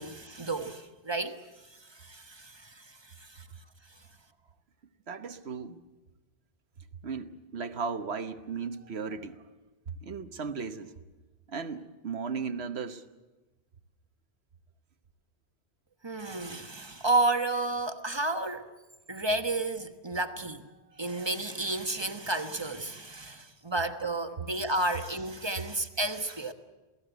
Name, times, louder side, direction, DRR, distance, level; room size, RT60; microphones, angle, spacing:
voice 1, 0.0-1.4 1.8-3.5 16.0-18.7 19.1-20.7 21.0-26.5, right 2 dB, 25° right, 1.3 m, -31 dB
voice 2, 5.1-5.8 7.0-9.4 9.9-10.9 11.5-13.0 20.9-21.0, right 5 dB, 80° right, 1.4 m, -36 dB
28.0 x 17.5 x 8.1 m
omnidirectional pair, 1.1 m